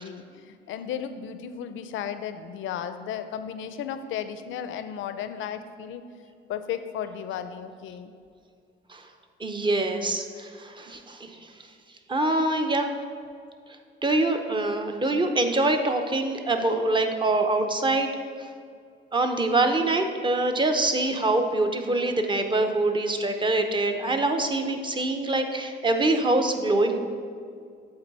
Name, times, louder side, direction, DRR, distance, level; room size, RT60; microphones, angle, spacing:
voice 1, 0.0-6.0 6.5-8.1, left 8 dB, 80° left, 10 dB, 0.5 m, -34 dB
voice 2, 9.4-11.3 12.1-12.9 14.0-18.1 19.1-27.0, right 2 dB, 25° right, 5 dB, 0.7 m, -24 dB
7.9 x 4.0 x 5.4 m, 2.3 s
cardioid pair, 90°, 20 cm